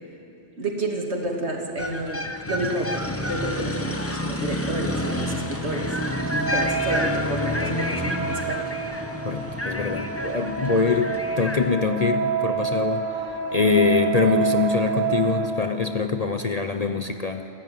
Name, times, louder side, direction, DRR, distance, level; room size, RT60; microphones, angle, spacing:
voice 1, 0.6-8.7, right 1 dB, 65° right, 1 dB, 2.7 m, -30 dB
sound 1, 1.8-11.7, left 1 dB, 10° left, 1.1 m, -29 dB
sound 2, 4.6-15.5, right 6 dB, 85° right, 2.3 m, -29 dB
sound 3, 5.7-11.0, right 1 dB, 45° right, 2.8 m, -48 dB
voice 2, 9.2-13.1 13.5-17.5, left 4 dB, 40° left, 7 dB, 0.8 m, -24 dB
28.5 x 13.5 x 9.5 m, 3.0 s
omnidirectional pair, 1.2 m